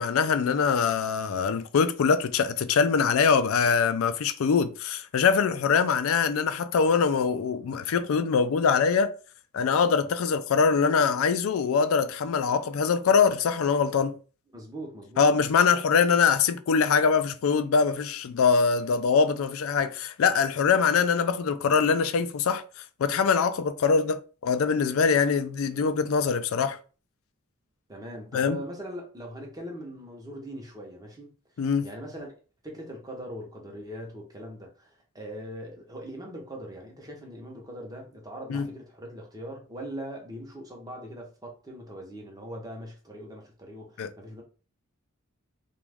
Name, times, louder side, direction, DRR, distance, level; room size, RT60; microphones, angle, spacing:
voice 1, 0.0-9.1 9.5-14.2 15.2-22.6 23.0-26.8 28.3-28.6 31.6-31.9 38.5-38.7 44.0-44.1, left 5 dB, 70° left, 0.4 m, -23 dB
voice 2, 14.5-15.3 27.9-31.3 31.8-32.3 32.6-44.4, equal, 20° right, 0.8 m, -41 dB
3.0 x 2.3 x 3.4 m
head